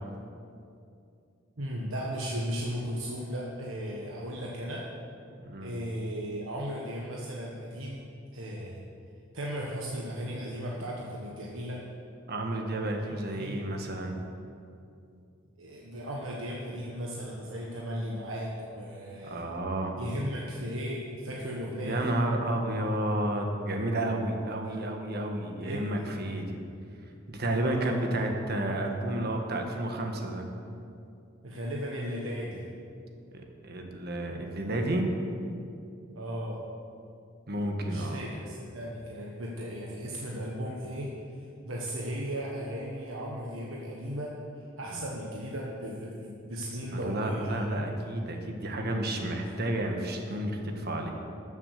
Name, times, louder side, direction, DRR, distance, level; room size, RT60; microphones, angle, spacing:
voice 1, 1.6-4.9 5.6-8.0 8.3-8.8 9.3-11.8 13.0-13.7 15.6-19.4 20.0-22.1 24.6-24.9 25.5-26.1 27.6-28.3 31.4-32.6 36.1-36.6 37.8-41.1 41.6-44.3 44.8-47.7 49.4-49.5, equal, 85° right, -3 dB, 1.4 m, -36 dB
voice 2, 5.4-5.7 12.3-14.2 19.2-19.9 21.8-26.6 27.3-30.4 33.6-35.1 37.5-38.2 44.9-45.1 46.9-51.1, right 1 dB, 55° right, 3 dB, 1.5 m, -31 dB
13.0 x 7.4 x 6.7 m, 2.6 s
head